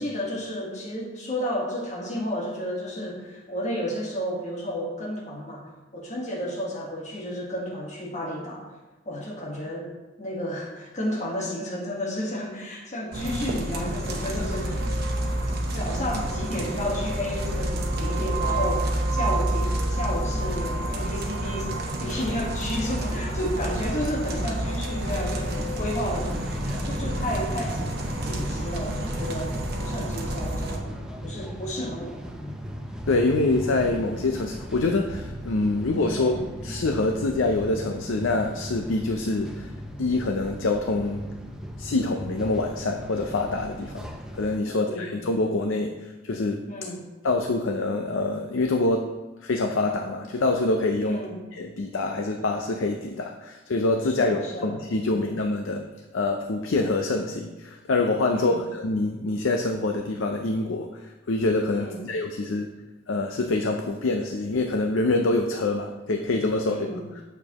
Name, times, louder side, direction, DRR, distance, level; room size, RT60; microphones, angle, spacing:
voice 1, 0.0-8.6 9.0-9.8 10.2-15.0 15.7-26.5 26.8-30.9 31.2-32.6 36.1-36.5 44.7-45.1 46.7-47.0 51.0-51.4 54.0-54.8 55.0-55.3 58.3-58.6 61.7-62.0 66.6-67.1, equal, 35° left, -4 dB, 1.4 m, -32 dB
sound 1, 13.1-30.8, right 1 dB, 50° right, 0.9 m, -29 dB
sound 2, 24.9-44.6, equal, 5° right, 0.6 m, -38 dB
voice 2, 33.1-39.7 40.0-41.2 41.8-44.1 44.3-46.6 47.2-49.1 49.4-51.2 51.5-55.9 56.1-60.9 61.3-62.7 63.1-66.9 67.2-67.3, left 2 dB, 70° left, 4 dB, 0.5 m, -25 dB
8.4 x 6.8 x 3.0 m, 1.1 s
head